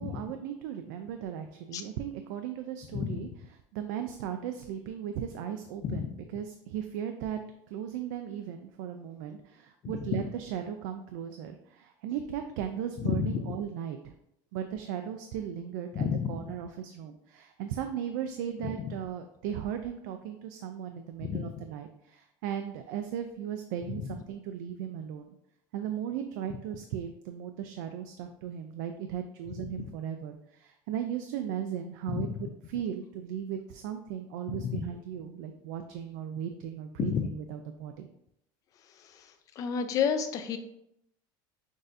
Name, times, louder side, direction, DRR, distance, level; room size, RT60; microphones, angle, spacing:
voice 1, 0.0-3.3 3.7-7.4 7.7-14.1 14.5-25.4 25.7-38.1, right 9 dB, 80° right, 6 dB, 0.4 m, -37 dB
voice 2, 2.9-3.3 5.8-6.1 9.8-9.9 13.0-13.4 15.9-16.3 21.2-21.5 32.1-32.3 34.5-34.8 37.1-37.2 39.6-40.6, left 7 dB, 35° left, 8 dB, 0.4 m, -30 dB
6.1 x 2.6 x 2.6 m, 0.78 s
cardioid pair, 160°, 11 cm